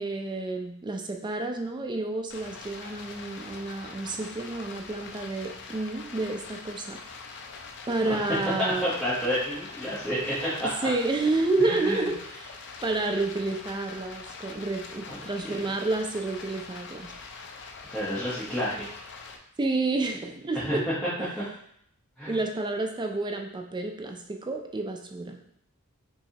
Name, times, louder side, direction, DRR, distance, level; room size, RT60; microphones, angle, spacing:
voice 1, 0.0-7.0 7.9-8.9 10.8-17.1 19.6-20.8 21.2-21.3 22.3-25.4, right 2 dB, 20° right, 3 dB, 0.4 m, -30 dB
Stream, 2.3-19.4, left 4 dB, 55° left, 0.5 m, -43 dB
voice 2, 8.8-10.3 10.6-10.9 11.6-12.1 15.1-15.6 17.9-18.9 20.5-20.8 22.2-22.4, equal, ahead, -12 dB, 1.1 m, -30 dB
5.4 x 3.2 x 2.9 m, 0.69 s
head